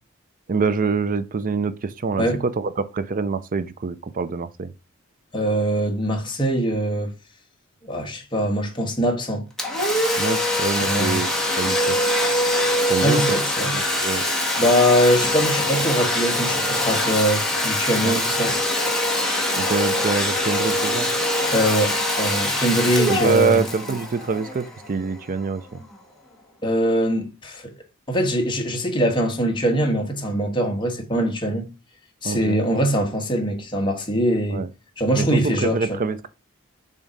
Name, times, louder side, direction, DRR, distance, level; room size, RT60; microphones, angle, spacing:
voice 1, 0.5-4.7 10.2-11.3 11.6-12.0 12.9-13.2 13.7-14.2 18.0-18.2 19.6-21.1 23.1-25.6 32.2-32.6 34.5-34.7 35.2-36.3, right 4 dB, 40° right, 0.4 m, -25 dB
voice 2, 5.3-7.1 7.8-9.5 10.8-11.2 12.8-13.7 14.6-18.6 21.5-23.6 26.6-27.7 28.1-31.7 32.2-34.6 35.0-36.0, equal, 25° left, 1.3 m, -22 dB
Domestic sounds home sounds, 9.6-25.1, left 1 dB, 5° left, 1.3 m, -23 dB
7.0 x 2.8 x 5.0 m
head